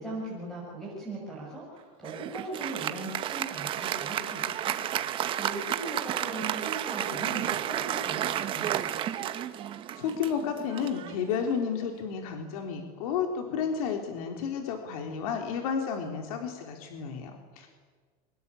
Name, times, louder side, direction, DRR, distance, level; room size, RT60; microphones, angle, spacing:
voice 1, 0.0-4.8 5.1-8.9, right 2 dB, ahead, -5 dB, 6.6 m, -39 dB
Applause, 2.0-11.8, right 11 dB, 30° right, 1.2 m, -32 dB
voice 2, 9.9-17.7, left 6 dB, 75° left, 4 dB, 3.8 m, -32 dB
28.5 x 24.5 x 8.6 m, 1.5 s
supercardioid pair, 170°, 19 cm